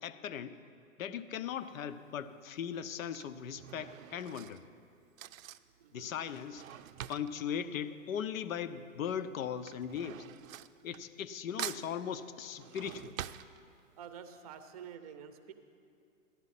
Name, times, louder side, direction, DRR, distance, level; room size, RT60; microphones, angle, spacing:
voice 1, 0.0-0.6 1.0-4.6 5.9-6.6 7.1-10.2 10.8-13.1, left 8 dB, 80° left, 13 dB, 0.7 m, -38 dB
Drawer open or close / Cutlery silverware, 1.6-2.0 2.8-8.7 9.0-11.3 11.6-14.1 14.5-14.6 14.8-14.9, right 12 dB, 85° right, 0.5 m, -46 dB
voice 2, 5.8-6.1 13.9-15.5, right 7 dB, 30° right, 9 dB, 0.6 m, -48 dB
14.5 x 11.0 x 4.1 m, 2.4 s
hypercardioid pair, 160°, 40 cm